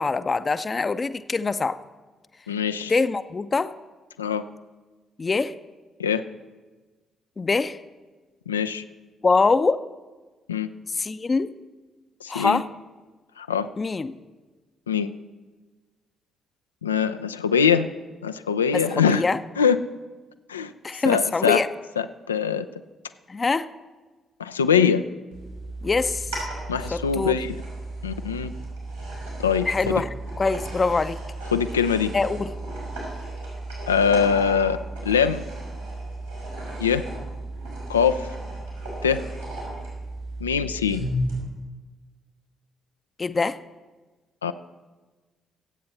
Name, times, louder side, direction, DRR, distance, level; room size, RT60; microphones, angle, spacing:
voice 1, 0.0-1.8 2.9-3.7 5.2-5.5 7.4-7.8 9.2-9.8 11.0-11.5 12.3-12.7 13.8-14.2 18.7-19.4 20.8-21.7 23.3-23.7 25.8-26.3 26.9-27.4 29.7-30.1 30.4-31.2 32.1-32.5 43.2-43.6, left 4 dB, 30° left, 12 dB, 0.6 m, -23 dB
voice 2, 2.5-2.9 4.2-4.4 6.0-6.2 8.5-8.8 10.5-10.7 12.2-12.6 13.4-13.7 14.9-15.1 16.8-17.9 18.2-19.2 19.6-19.8 20.5-20.7 21.0-21.6 22.0-22.6 24.4-25.0 26.7-27.5 28.0-28.5 29.4-29.9 31.5-32.1 33.9-34.8 35.1-35.4 36.8-37.0 37.9-38.3 39.0-39.2 40.4-41.0 44.4-44.5, left 7 dB, 80° left, 11 dB, 0.4 m, -22 dB
sound 1, 25.3-41.4, right 1 dB, 90° right, 5.2 m, -34 dB
24.5 x 8.6 x 4.2 m, 1.3 s
figure-of-eight pair, 40°, 0 cm